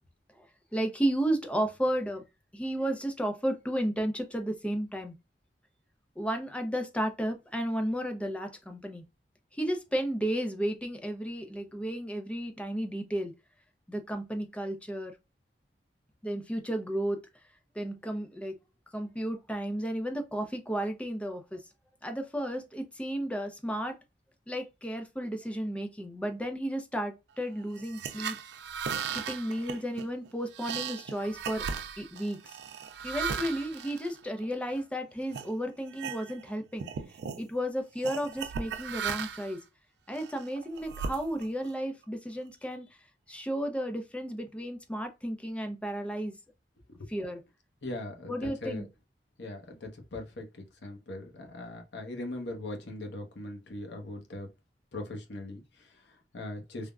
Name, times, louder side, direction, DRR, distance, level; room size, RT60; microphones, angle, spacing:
voice 1, 0.7-2.2 2.5-5.1 6.2-9.0 9.5-13.3 13.9-15.2 16.2-17.2 17.7-18.6 18.9-21.6 22.0-24.0 24.5-28.4 29.1-31.7 32.0-32.4 33.0-36.9 37.4-39.6 40.1-42.9 43.3-46.3 47.1-47.4 48.3-48.9, right 1 dB, 5° left, 0.5 m, -33 dB
sound 1, 27.7-34.8 35.3-35.5 35.9-36.5 36.8-37.4 38.0-39.6 40.1-41.7, right 6 dB, 65° right, 0.3 m, -37 dB
voice 2, 47.8-48.8 49.4-54.5 54.9-56.9, left 2 dB, 75° left, 0.8 m, -40 dB
3.4 x 2.1 x 2.3 m
head